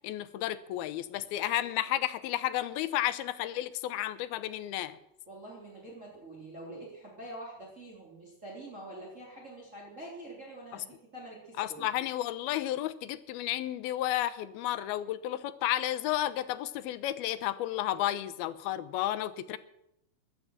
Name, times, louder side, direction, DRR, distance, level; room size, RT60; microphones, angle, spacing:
voice 1, 0.0-5.0 11.6-19.6, left 13 dB, 85° left, 13 dB, 2.8 m, -32 dB
voice 2, 5.3-11.9, right 1 dB, 20° right, -3 dB, 3.5 m, -46 dB
15.5 x 11.5 x 7.4 m, 0.81 s
omnidirectional pair, 4.3 m